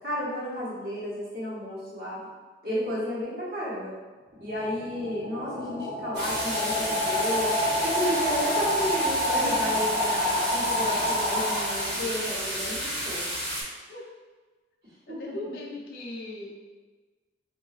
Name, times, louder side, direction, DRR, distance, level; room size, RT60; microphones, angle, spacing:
voice 1, 0.0-2.2 2.6-3.9 4.4-13.2 15.1-15.5, equal, 55° right, -8 dB, 1.2 m, -32 dB
sound 1, 4.4-12.2, left 1 dB, 25° right, 0.7 m, -28 dB
sound 2, 6.1-13.6, equal, 80° right, 1.4 m, -32 dB
voice 2, 15.1-16.6, left 1 dB, 55° left, -4 dB, 0.5 m, -38 dB
3.6 x 2.6 x 3.2 m, 1.3 s
head